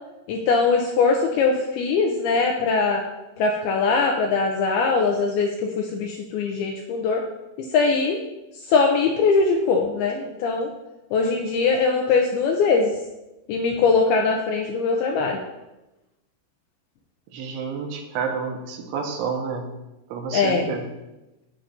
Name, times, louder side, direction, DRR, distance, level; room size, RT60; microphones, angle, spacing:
voice 1, 0.3-3.0 3.4-7.2 7.7-8.2 8.7-10.7 11.1-12.9 13.5-15.4 20.3-20.7, left 4 dB, 80° left, 1 dB, 2.3 m, -21 dB
voice 2, 17.3-19.7 20.1-20.9, right 5 dB, 85° right, 2 dB, 3.5 m, -29 dB
11.0 x 8.7 x 2.6 m, 0.99 s
omnidirectional pair, 5.2 m